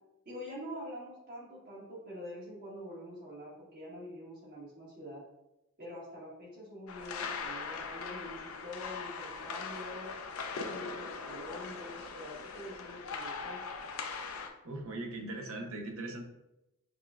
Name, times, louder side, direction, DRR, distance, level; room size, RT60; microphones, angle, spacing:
voice 1, 0.2-5.2 5.8-10.1 10.6-13.6, equal, 40° right, -6 dB, 1.5 m, -45 dB
sound 1, 6.9-14.5, left 5 dB, 75° left, 0.4 m, -40 dB
voice 2, 14.6-16.2, right 2 dB, 70° right, 3 dB, 0.7 m, -39 dB
6.2 x 2.2 x 2.3 m, 0.91 s
head